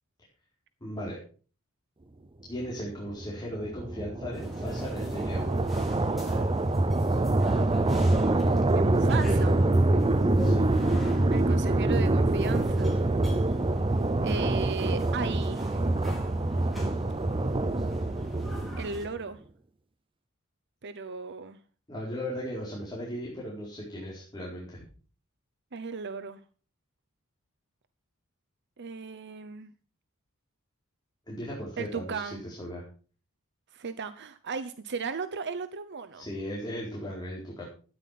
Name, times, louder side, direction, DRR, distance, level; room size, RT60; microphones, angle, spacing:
voice 1, 0.8-1.2 2.5-5.5 10.3-10.7 14.3-14.6 21.9-24.8 31.3-32.8 36.1-37.7, equal, 20° left, 4.6 m, -37 dB
sound 1, 2.9-19.2, right 2 dB, 25° right, 0.6 m, -25 dB
sound 2, 4.3-19.1, left 1 dB, ahead, 4.5 m, -45 dB
voice 2, 8.7-9.7 11.3-13.0 14.2-15.9 18.8-19.4 20.8-21.6 25.7-26.4 28.8-29.7 31.8-32.4 33.7-36.3, right 5 dB, 55° right, 0.8 m, -36 dB
13.5 x 10.0 x 5.8 m
head